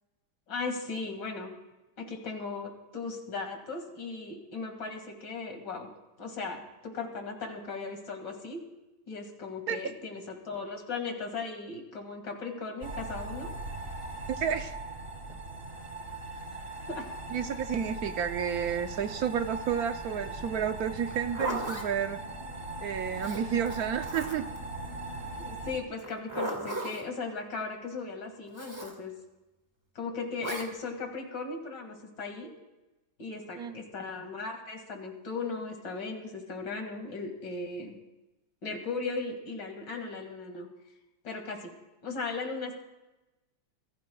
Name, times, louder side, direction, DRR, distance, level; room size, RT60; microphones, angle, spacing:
voice 1, 0.5-1.5 2.0-5.9 6.2-8.6 9.1-13.5 16.9-17.1 25.4-29.1 29.9-32.5 33.2-38.0 38.6-40.7 41.2-41.7 42.0-42.7, left 4 dB, 60° left, 3 dB, 2.7 m, -37 dB
sound 1, 12.8-25.8, right 2 dB, 30° right, 1.8 m, -39 dB
voice 2, 14.4-14.7 17.3-22.2 22.8-24.4 33.6-33.7, right 8 dB, 65° right, 8 dB, 0.9 m, -31 dB
Zipper (clothing), 21.0-21.9 23.2-24.6 26.0-27.1 28.5-28.9 30.4-30.7, right 1 dB, 10° right, 1.8 m, -36 dB
25.5 x 15.5 x 2.3 m, 1.0 s
omnidirectional pair, 2.2 m